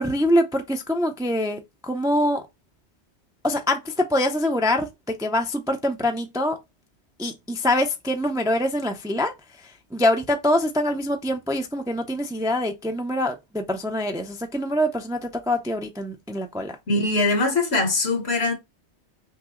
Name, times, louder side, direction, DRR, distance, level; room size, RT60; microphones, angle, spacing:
voice 1, 0.0-2.4 3.4-6.6 7.2-9.3 9.9-16.7, left 1 dB, 5° right, 0.4 m, -24 dB
voice 2, 16.9-18.5, left 2 dB, 65° left, 1.3 m, -22 dB
5.8 x 2.0 x 3.7 m
omnidirectional pair, 1.2 m